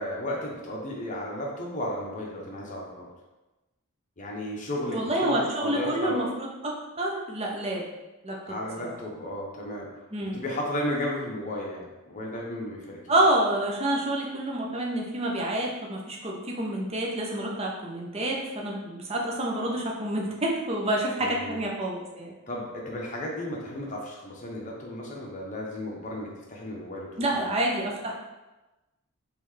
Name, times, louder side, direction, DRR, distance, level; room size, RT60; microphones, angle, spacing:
voice 1, 0.0-3.1 4.2-6.2 8.5-9.9 10.2-13.0 21.2-21.6 22.5-27.5, left 1 dB, 35° left, -2 dB, 0.8 m, -34 dB
voice 2, 4.9-7.9 8.2-8.6 8.8-9.0 10.1-10.4 13.1-22.3 27.2-28.1, right 1 dB, 25° right, -1 dB, 0.6 m, -28 dB
4.2 x 3.2 x 3.1 m, 1.1 s
head